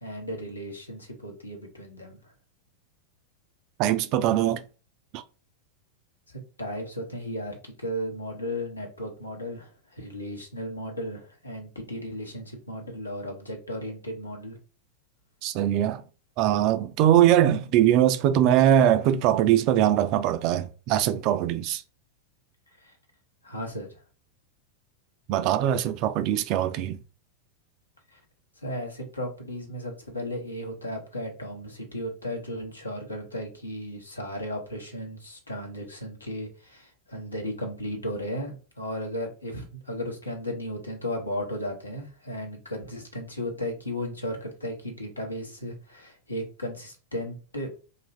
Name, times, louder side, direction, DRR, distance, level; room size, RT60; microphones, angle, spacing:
voice 1, 0.0-2.2 6.6-14.6 22.8-22.9 23.4-23.9 28.1-28.2 28.6-47.7, equal, 80° left, 0.9 m, -35 dB
voice 2, 3.8-4.6 5.1-5.2 15.4-16.0 16.4-21.8 25.3-27.0, right 11 dB, 40° right, 0.3 m, -22 dB
2.6 x 2.4 x 3.1 m
figure-of-eight pair, 90°, 0 cm